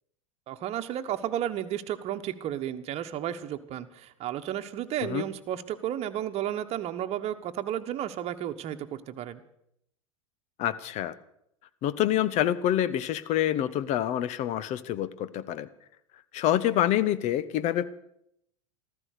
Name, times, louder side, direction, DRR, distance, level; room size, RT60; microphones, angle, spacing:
voice 1, 0.5-9.4, right 11 dB, 40° right, 7 dB, 1.3 m, -33 dB
voice 2, 10.6-11.1 11.8-15.7 16.3-17.9, left 11 dB, 40° left, 17 dB, 1.0 m, -27 dB
14.5 x 14.0 x 6.6 m, 0.76 s
hypercardioid pair, 95°, 17 cm